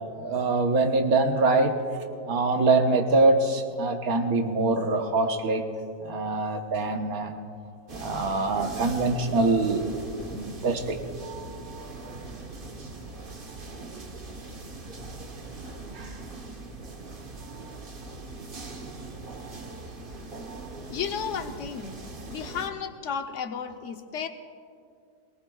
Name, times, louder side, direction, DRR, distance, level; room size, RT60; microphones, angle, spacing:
voice 1, 0.2-1.8 2.2-5.7 6.0-7.3 7.9-10.0 10.3-11.0 15.9-16.1, right 3 dB, 70° right, 4 dB, 1.5 m, -24 dB
sound 1, 7.9-22.7, right 3 dB, 40° right, 1.2 m, -40 dB
voice 2, 20.9-22.0 22.3-24.3, left 7 dB, 55° left, 7 dB, 1.0 m, -33 dB
22.5 x 18.5 x 2.3 m, 2.4 s
omnidirectional pair, 1.6 m